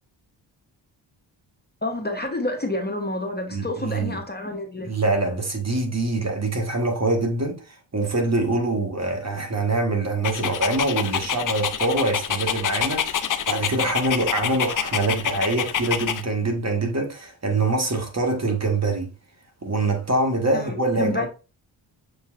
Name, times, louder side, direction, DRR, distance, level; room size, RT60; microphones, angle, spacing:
voice 1, 1.8-4.9 20.5-21.3, left 1 dB, 20° left, 0.9 m, -28 dB
voice 2, 3.5-4.2 4.8-19.1 19.6-21.3, right 2 dB, 30° right, 1.4 m, -24 dB
Dog, 10.2-16.2, left 8 dB, 40° left, 0.5 m, -27 dB
6.6 x 3.0 x 2.5 m
supercardioid pair, 45°, 48 cm